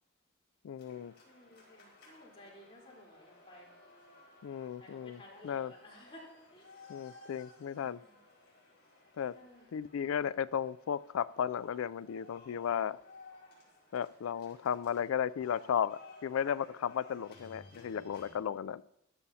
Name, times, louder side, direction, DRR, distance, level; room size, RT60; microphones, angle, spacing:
voice 1, 0.6-1.1 4.4-5.7 6.9-8.0 9.2-9.3 9.7-13.0 13.9-18.8, left 8 dB, 70° left, 18 dB, 0.3 m, -35 dB
sound 1, 0.8-18.3, left 3 dB, 50° left, 4.5 m, -58 dB
voice 2, 1.2-3.7 4.8-6.9 7.8-8.2 9.3-9.7, left 1 dB, 25° left, -4 dB, 3.8 m, -56 dB
14.0 x 12.5 x 2.8 m, 0.82 s
head